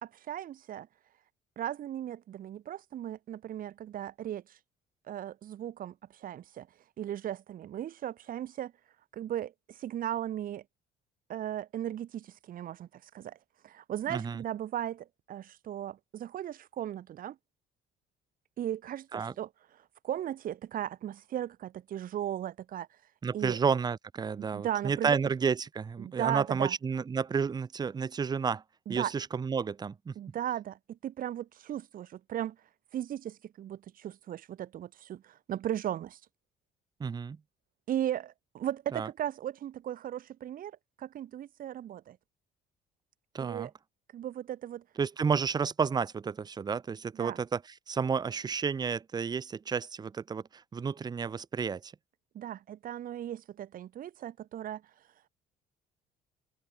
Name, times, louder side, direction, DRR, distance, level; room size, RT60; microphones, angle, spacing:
voice 1, 0.0-0.9 1.6-4.6 5.1-6.7 7.0-8.7 9.1-10.6 11.3-12.9 13.1-13.4 13.6-17.4 18.6-19.5 20.0-22.9 23.3-23.6 24.4-25.2 26.0-26.8 28.9-29.1 30.2-32.6 32.9-36.2 37.9-40.7 41.0-42.2 43.4-43.7 44.1-44.8 47.2-47.4 52.4-54.8, right 11 dB, 55° right, 1.7 m, -36 dB
voice 2, 14.1-14.4 19.1-19.3 23.2-28.6 28.9-30.1 37.0-37.4 38.9-39.1 43.3-43.7 45.0-47.6 47.9-51.9, right 6 dB, 25° right, 0.6 m, -31 dB
cardioid pair, 110°, 17 cm